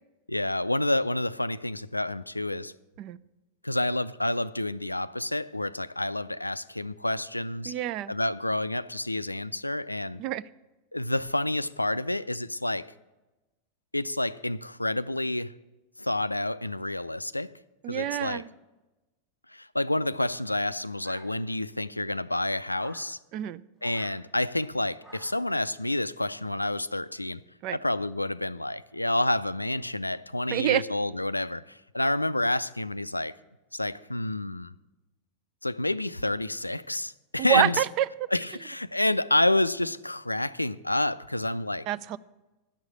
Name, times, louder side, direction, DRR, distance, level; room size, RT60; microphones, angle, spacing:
voice 1, 0.3-2.7 3.6-7.7 8.1-10.2 10.9-12.9 13.9-15.5 16.0-17.5 17.9-18.4 19.5-23.2 23.8-27.4 27.7-33.3 33.7-34.7 35.6-37.8 38.3-41.9, left 1 dB, 85° left, 0.3 m, -29 dB
voice 2, 7.7-8.1 10.2-10.4 17.8-18.5 23.3-23.6 27.6-27.8 30.5-30.8 37.4-38.1 41.9-42.2, right 12 dB, 40° right, 0.4 m, -27 dB
sound 1, 21.0-21.8 22.7-23.1 23.8-24.2 25.0-25.5, right 2 dB, 20° right, 1.4 m, -52 dB
10.0 x 6.3 x 8.4 m
figure-of-eight pair, 90°, 0 cm